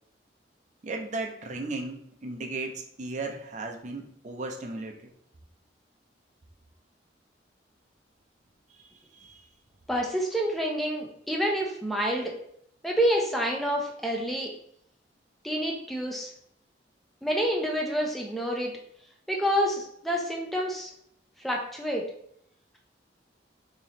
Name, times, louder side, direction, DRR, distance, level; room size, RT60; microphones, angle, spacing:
voice 1, 0.8-5.1 8.7-8.8 9.1-9.4, right 2 dB, 40° right, 3 dB, 0.6 m, -36 dB
voice 2, 9.9-12.3 12.8-14.5 15.4-16.3 17.2-18.8 19.3-20.9 21.4-22.0, equal, ahead, -1 dB, 0.6 m, -28 dB
3.0 x 3.0 x 4.1 m, 0.69 s
head